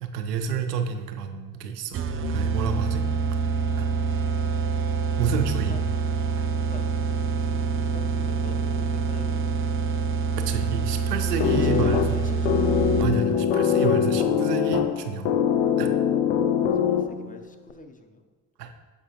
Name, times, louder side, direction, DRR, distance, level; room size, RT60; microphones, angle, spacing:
voice 1, 0.0-2.0 2.3-3.0 3.8-3.9 5.2-5.8 10.4-12.2 13.0-15.3 15.8-15.9 18.6-18.7, right 6 dB, 90° right, 6 dB, 0.6 m, -29 dB
sound 1, 1.9-13.3, right 5 dB, 30° right, 0.4 m, -26 dB
voice 2, 7.3-9.5 11.3-12.6 16.9-17.9, left 2 dB, 20° left, 6 dB, 0.5 m, -44 dB
sound 2, 11.4-17.4, left 8 dB, 70° left, 0.6 m, -23 dB
6.9 x 4.8 x 2.9 m, 1.4 s
hypercardioid pair, 55°, 46 cm